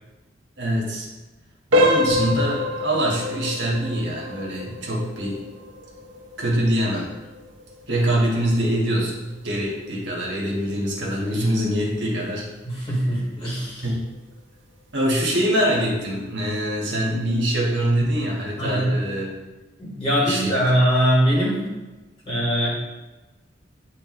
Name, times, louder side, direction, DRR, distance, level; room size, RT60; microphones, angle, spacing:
voice 1, 0.6-1.1 1.7-5.4 6.4-7.1 7.9-12.5 12.8-12.9 13.8-14.0 14.9-19.3 20.2-20.5, equal, 65° right, -3 dB, 1.5 m, -24 dB
sound 1, 1.7-12.4 12.7-13.0 13.6-13.7 14.2-14.3, left 1 dB, 85° right, 1.2 m, -28 dB
voice 2, 12.6-13.9 18.6-19.0 19.8-21.6 22.3-22.7, equal, 30° left, -6 dB, 2.0 m, -21 dB
9.0 x 3.3 x 3.2 m, 1.1 s
head